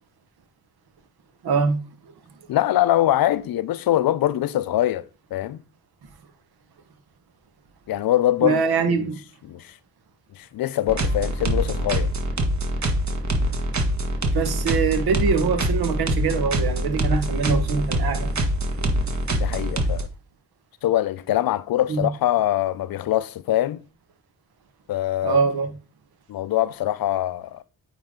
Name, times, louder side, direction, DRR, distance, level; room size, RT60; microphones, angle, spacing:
voice 1, 1.4-1.8 8.4-9.2 14.3-18.3 21.9-22.0 25.2-25.7, right 5 dB, 75° right, 1.3 m, -23 dB
voice 2, 2.5-5.6 7.9-8.6 9.0-9.1 9.5-9.7 10.4-12.1 19.3-20.1 20.8-23.8 24.9-25.4 26.3-27.6, left 13 dB, 65° left, 0.5 m, -23 dB
sound 1, 10.9-20.0, right 1 dB, 45° right, 1.6 m, -24 dB
8.8 x 3.9 x 3.7 m
supercardioid pair, 55°, 38 cm